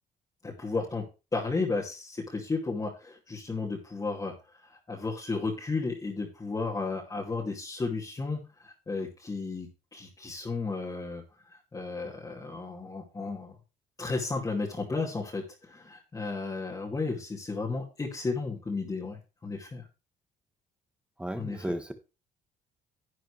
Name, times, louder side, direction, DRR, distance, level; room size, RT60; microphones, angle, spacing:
voice 1, 0.4-1.1 1.3-4.3 4.7-11.2 11.7-13.6 14.0-19.9 21.3-21.7, left 3 dB, 20° left, -5 dB, 2.4 m, -33 dB
voice 2, 21.2-21.9, right 1 dB, 5° right, 7 dB, 1.5 m, -34 dB
11.0 x 9.0 x 3.3 m, 0.30 s
cardioid pair, 110°, 17 cm